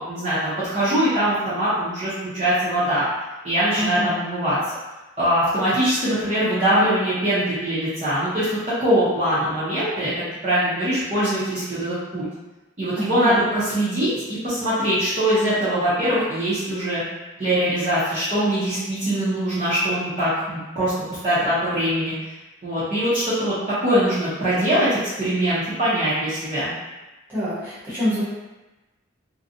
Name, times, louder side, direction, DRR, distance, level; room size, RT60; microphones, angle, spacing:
voice 1, 0.0-3.1 3.4-4.6 5.2-10.1 10.4-12.2 12.8-14.1 14.4-17.0 17.4-22.1 22.6-23.5 23.8-26.7, right 1 dB, 35° right, -12 dB, 0.7 m, -22 dB
voice 2, 3.8-4.1 13.0-13.4 27.3-28.2, equal, 10° right, -12 dB, 1.0 m, -26 dB
2.6 x 2.2 x 2.5 m, 1.1 s
head